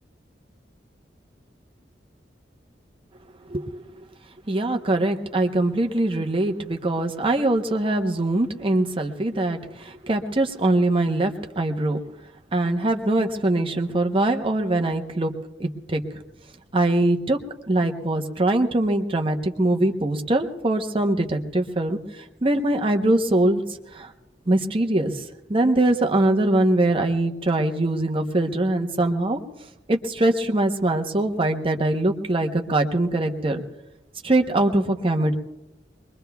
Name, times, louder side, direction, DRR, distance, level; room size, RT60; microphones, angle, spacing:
voice 1, 4.5-12.0 12.5-15.3 15.6-16.0 16.7-17.4 17.7-22.0 22.4-23.6 24.0-24.1 24.5-25.1 25.5-29.4 29.9-33.6 34.2-35.4, right 2 dB, 30° right, 4 dB, 0.9 m, -22 dB
23.5 x 22.0 x 2.3 m, 0.99 s
head